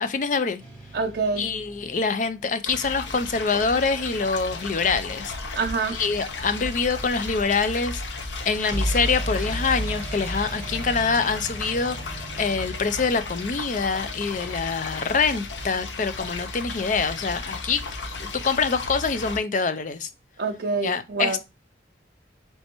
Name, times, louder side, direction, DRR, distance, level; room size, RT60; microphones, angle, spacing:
voice 1, 0.0-0.6 1.4-5.3 5.9-8.0 8.4-17.8 18.2-20.1 20.8-21.4, left 4 dB, 45° left, 0.4 m, -25 dB
sound 1, 0.6-2.6 8.7-14.5, right 1 dB, 5° left, 1.4 m, -34 dB
voice 2, 0.9-1.5 5.6-6.0 20.4-21.4, right 4 dB, 60° right, 0.5 m, -26 dB
sound 2, 2.7-19.4, left 3 dB, 75° left, 0.7 m, -35 dB
4.2 x 3.3 x 2.9 m
head